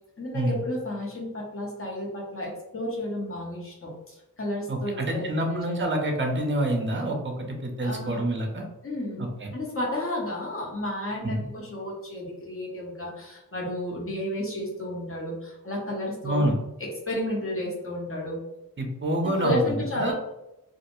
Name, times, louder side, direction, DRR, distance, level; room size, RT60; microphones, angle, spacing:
voice 1, 0.2-3.9 4.4-5.7 7.8-8.2 8.8-9.2 9.5-16.4 17.1-18.4 19.4-20.1, left 1 dB, 40° left, -3 dB, 0.9 m, -32 dB
voice 2, 4.7-8.7 9.2-9.5 11.2-11.4 16.2-16.6 18.8-20.1, right 1 dB, 35° right, 2 dB, 0.6 m, -27 dB
2.3 x 2.1 x 3.0 m, 0.94 s
wide cardioid pair, 65°, 34 cm